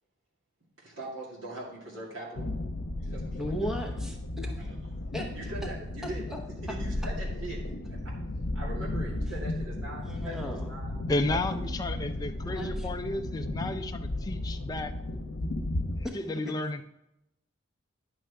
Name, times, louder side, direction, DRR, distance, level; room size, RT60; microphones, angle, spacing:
voice 1, 0.8-2.5 3.0-4.0 4.4-4.7 5.3-6.2 6.6-7.6 7.9-8.0 8.5-10.9 11.3-11.8, right 1 dB, 70° right, -4 dB, 2.2 m, -42 dB
sound 1, 2.4-16.1, left 1 dB, 75° left, 0.8 m, -34 dB
voice 2, 3.4-4.5 5.1-5.3 6.3-6.4 6.7-6.8 10.0-10.7 12.4-12.9 16.0-16.2 16.5-16.6, equal, ahead, 1 dB, 0.9 m, -36 dB
voice 3, 11.1-14.9 16.1-16.8, left 2 dB, 20° left, 6 dB, 0.4 m, -32 dB
9.9 x 6.2 x 3.4 m, 0.87 s
head